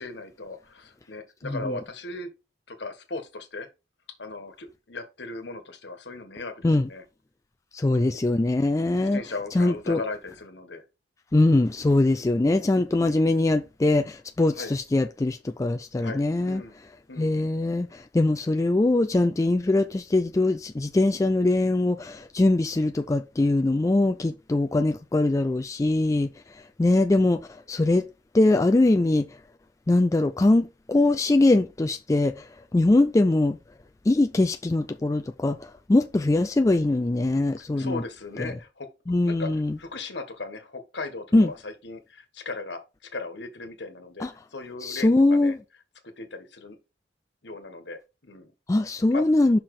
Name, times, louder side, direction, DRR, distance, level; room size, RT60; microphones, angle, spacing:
voice 1, 0.0-2.3 2.7-3.7 4.2-7.0 7.8-8.2 9.0-10.8 12.1-12.3 12.9-13.2 14.5-14.7 16.0-16.8 17.1-17.4 37.6-45.6 46.0-46.8 47.4-48.5 49.1-49.2, left 3 dB, 70° left, 1.4 m, -38 dB
voice 2, 7.7-9.2 9.6-10.0 11.3-16.6 17.2-26.3 26.8-27.4 27.7-28.1 28.3-29.3 29.9-32.3 32.7-33.6 34.1-35.6 35.9-38.0 39.1-39.7 41.3-41.5 44.2-44.3 44.8-45.6 48.7-49.6, left 2 dB, 20° left, 0.3 m, -22 dB
5.8 x 4.1 x 4.8 m
head